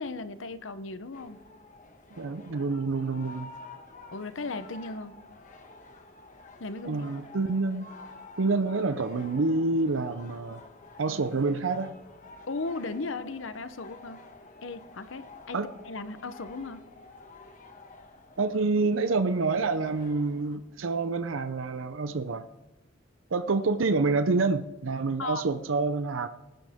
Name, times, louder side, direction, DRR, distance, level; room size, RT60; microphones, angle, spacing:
voice 1, 0.0-1.4 4.1-5.1 6.6-7.0 12.5-14.2 14.6-15.6 15.8-16.8 25.2-25.4, left 3 dB, 75° left, 12 dB, 0.8 m, -36 dB
sound 1, 1.1-20.6, left 3 dB, 40° left, 1.4 m, -50 dB
voice 2, 2.1-3.5 6.8-7.9 8.4-10.6 11.0-11.9 15.5-15.7 18.4-22.4 23.3-26.3, right 3 dB, 85° right, 11 dB, 0.6 m, -27 dB
19.0 x 11.5 x 3.6 m, 1.0 s
head